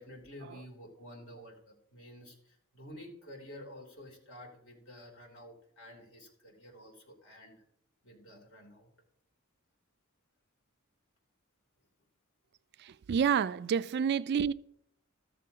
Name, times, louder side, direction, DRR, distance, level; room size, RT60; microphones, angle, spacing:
voice 1, 0.0-7.6 8.0-8.9, left 1 dB, 60° left, 3.3 m, -51 dB
voice 2, 12.8-14.5, right 7 dB, 50° right, 0.3 m, -29 dB
14.0 x 13.5 x 2.9 m
head